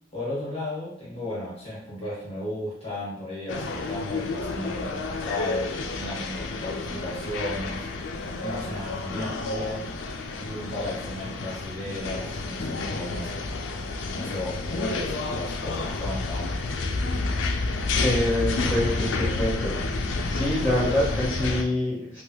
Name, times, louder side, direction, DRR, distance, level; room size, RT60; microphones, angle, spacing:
voice 1, 0.1-7.9 8.4-9.9 10.4-13.4 14.1-16.7, left 1 dB, 30° left, -8 dB, 1.4 m, -34 dB
sound 1, 3.5-21.6, left 3 dB, 75° left, 0.4 m, -30 dB
voice 2, 18.0-19.8 20.3-22.2, left 1 dB, 10° right, -13 dB, 1.2 m, -26 dB
3.4 x 2.3 x 3.0 m, 0.70 s
head